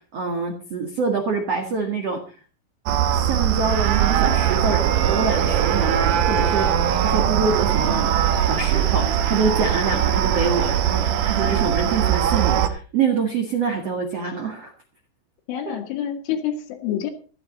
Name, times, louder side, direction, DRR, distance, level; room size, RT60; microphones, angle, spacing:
voice 1, 0.0-2.2 3.1-6.7 7.0-14.7, right 5 dB, 50° right, 3 dB, 2.1 m, -25 dB
sound 1, 2.9-12.7, right 9 dB, 75° right, 1.9 m, -20 dB
voice 2, 15.5-17.1, left 9 dB, 80° left, 1 dB, 4.3 m, -27 dB
15.0 x 13.5 x 4.1 m, 0.38 s
omnidirectional pair, 5.5 m